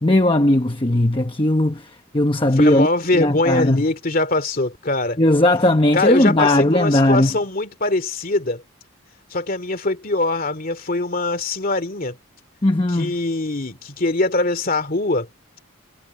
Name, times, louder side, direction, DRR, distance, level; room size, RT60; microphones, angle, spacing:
voice 1, 0.0-2.9 3.1-3.8 5.2-7.3 12.6-13.1, left 1 dB, 25° left, 1.0 m, -17 dB
voice 2, 2.6-5.2 5.9-8.6 9.3-12.2 12.9-15.3, left 2 dB, 40° left, 2.5 m, -22 dB
head